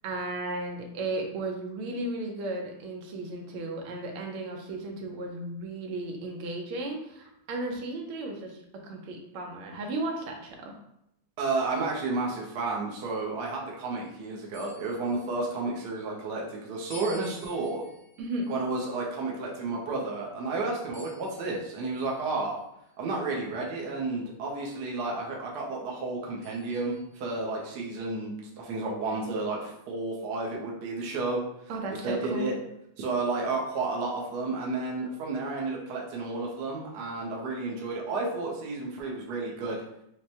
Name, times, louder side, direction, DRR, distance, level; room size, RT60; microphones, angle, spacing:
voice 1, 0.0-10.8 18.2-18.5 31.7-32.6, right 2 dB, 85° right, 1 dB, 1.6 m, -35 dB
voice 2, 11.4-17.8 18.5-22.6 23.0-31.4 32.0-32.5 33.0-39.8, right 3 dB, 65° right, -3 dB, 1.1 m, -32 dB
sound 1, 14.5-16.0 16.9-20.3 20.9-22.6 23.4-23.5 26.4-27.9, left 1 dB, 45° left, 0.5 m, -53 dB
6.0 x 2.1 x 2.7 m, 0.80 s
omnidirectional pair, 2.3 m